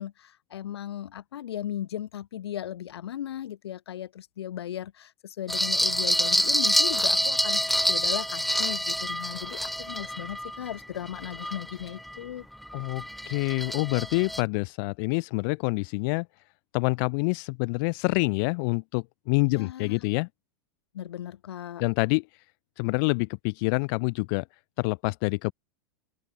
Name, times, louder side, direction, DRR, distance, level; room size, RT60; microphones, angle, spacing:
voice 1, 0.0-12.5 19.5-19.9 20.9-21.8, left 11 dB, 90° left, 0.9 m, -37 dB
sound 1, 5.5-12.2 12.6-14.4, equal, ahead, 1.3 m, -27 dB
voice 2, 12.7-16.3 16.7-20.3 21.8-22.3 22.8-24.4 24.8-25.5, left 31 dB, 55° left, 0.8 m, -27 dB
open air
hypercardioid pair, 115°, 13 cm